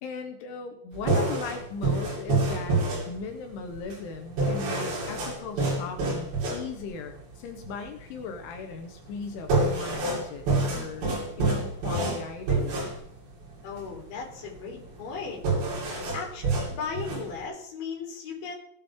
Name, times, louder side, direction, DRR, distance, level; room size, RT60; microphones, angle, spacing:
voice 1, 0.0-2.8 3.1-10.4 10.7-11.1 11.4-12.7, left 5 dB, 75° left, 5 dB, 3.4 m, -37 dB
sound 1, 0.9-17.5, right 3 dB, 50° right, 4.1 m, -29 dB
voice 2, 13.6-15.4 15.7-18.5, left 5 dB, 45° left, -3 dB, 4.6 m, -37 dB
17.5 x 8.6 x 3.6 m, 0.69 s
omnidirectional pair, 5.7 m